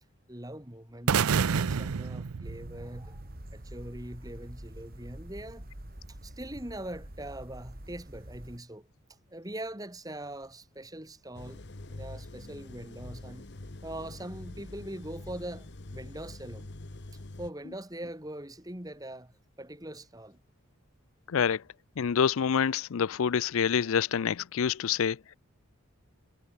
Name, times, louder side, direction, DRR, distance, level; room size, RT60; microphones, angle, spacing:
voice 1, 0.3-3.2 3.5-5.7 6.1-8.9 9.3-11.6 11.9-13.5 13.8-16.7 17.4-19.3 19.6-20.4, right 1 dB, 15° right, 2.4 m, -42 dB
sound 1, 1.1-3.2, right 6 dB, 85° right, 0.6 m, -28 dB
sound 2, 2.4-8.6, right 1 dB, 40° right, 2.8 m, -46 dB
sound 3, 11.3-17.5, left 2 dB, 50° left, 1.2 m, -45 dB
voice 2, 22.0-25.2, left 7 dB, 70° left, 0.4 m, -27 dB
head